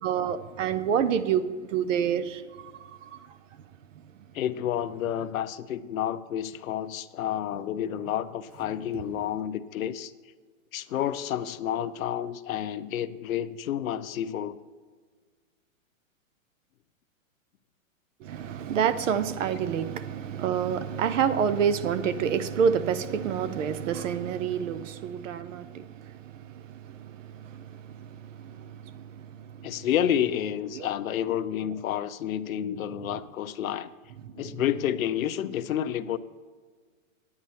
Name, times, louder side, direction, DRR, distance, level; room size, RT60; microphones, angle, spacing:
voice 1, 0.0-3.2 18.2-29.8 30.7-30.9 34.4-34.6, right 7 dB, 65° right, 0.8 m, -29 dB
voice 2, 4.3-10.1 10.7-14.6 29.6-33.9 34.3-36.2, left 10 dB, 80° left, 0.7 m, -30 dB
9.7 x 9.6 x 4.3 m
hypercardioid pair, 135°, 41 cm